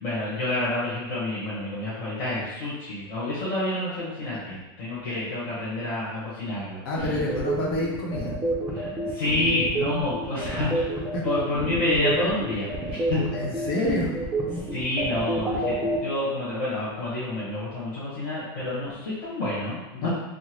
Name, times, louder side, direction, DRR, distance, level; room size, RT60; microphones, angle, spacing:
voice 1, 0.0-7.2 8.7-11.0 11.2-13.2 14.7-20.1, left 2 dB, 50° left, -9 dB, 1.3 m, -28 dB
voice 2, 6.8-8.3 13.3-14.1 19.9-20.1, left 1 dB, 75° left, -4 dB, 0.8 m, -28 dB
sound 1, 7.0-16.0, right 2 dB, 10° right, 0.5 m, -28 dB
3.7 x 2.1 x 3.1 m, 1.0 s
supercardioid pair, 155°, 12 cm